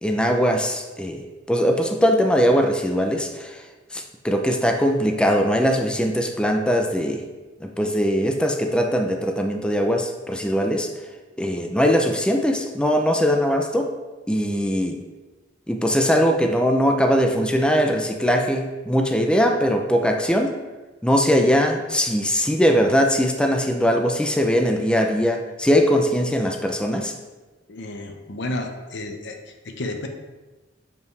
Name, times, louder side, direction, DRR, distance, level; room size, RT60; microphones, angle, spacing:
voice 1, 0.0-3.6 3.9-7.2 7.6-10.9 11.4-13.9 14.3-15.0 15.7-20.5 21.0-27.1, equal, 5° left, 3 dB, 0.5 m, -21 dB
voice 2, 27.7-29.4 29.6-30.1, left 1 dB, 70° left, 5 dB, 0.7 m, -31 dB
7.0 x 5.4 x 3.2 m, 1.2 s
head